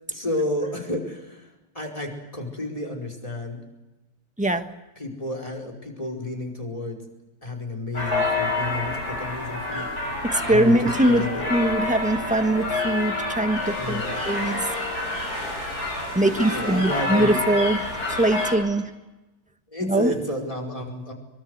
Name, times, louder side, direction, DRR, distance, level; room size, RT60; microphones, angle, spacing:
voice 1, 0.1-1.5 1.7-3.6 5.0-7.0 7.4-11.5 13.8-14.5 16.2-17.4 19.7-21.1, left 1 dB, 15° left, 3 dB, 5.0 m, -31 dB
sound 1, 7.9-18.5, left 2 dB, 45° left, 7.8 m, -28 dB
voice 2, 10.2-14.6 15.2-15.3 16.1-18.9 19.8-20.1, right 1 dB, 5° right, 7 dB, 1.0 m, -22 dB
24.0 x 24.0 x 8.1 m, 1.0 s
omnidirectional pair, 2.3 m